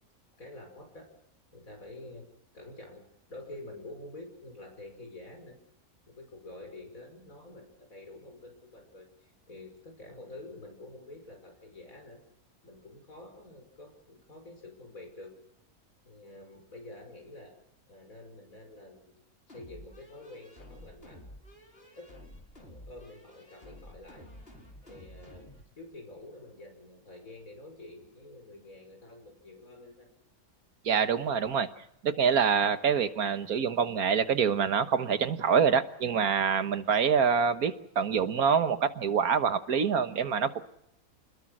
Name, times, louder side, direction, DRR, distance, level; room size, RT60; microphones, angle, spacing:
voice 1, 0.4-1.1 1.5-2.3 2.5-3.0 3.3-5.6 6.1-12.2 12.6-15.4 16.0-17.6 17.9-19.2 19.5-21.2 22.0-22.1 22.5-24.3 24.8-25.5 25.8-30.1, left 2 dB, 70° left, 3 dB, 6.1 m, -48 dB
sound 1, 19.5-25.7, left 1 dB, 40° left, 5.1 m, -51 dB
voice 2, 30.9-31.7 32.0-40.6, right 6 dB, 85° right, 10 dB, 1.8 m, -26 dB
27.0 x 20.5 x 6.2 m, 0.75 s
omnidirectional pair, 1.5 m